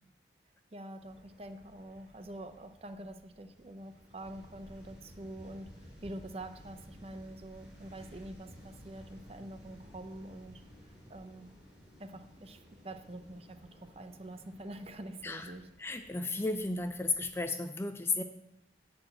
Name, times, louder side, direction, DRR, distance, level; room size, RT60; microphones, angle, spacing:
voice 1, 0.7-10.6 11.1-11.5 12.0-15.6, right 1 dB, 35° right, 8 dB, 0.6 m, -46 dB
sound 1, 1.0-17.4, equal, 5° right, 2.9 m, -56 dB
voice 2, 15.2-15.5 15.8-18.2, left 3 dB, 15° left, 8 dB, 0.4 m, -34 dB
11.0 x 4.2 x 7.8 m, 0.84 s
head